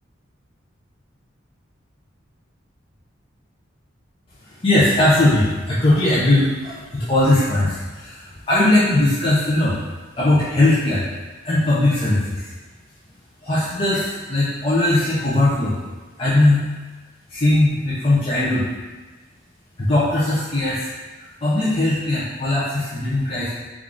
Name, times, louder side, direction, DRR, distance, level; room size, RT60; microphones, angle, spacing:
voice 1, 4.6-9.8 10.2-11.1 11.4-12.5 13.4-15.8 16.2-16.7 17.3-18.7 19.8-20.9 21.4-23.5, left 1 dB, 30° left, -10 dB, 0.5 m, -19 dB
3.5 x 2.4 x 3.6 m, 1.3 s
head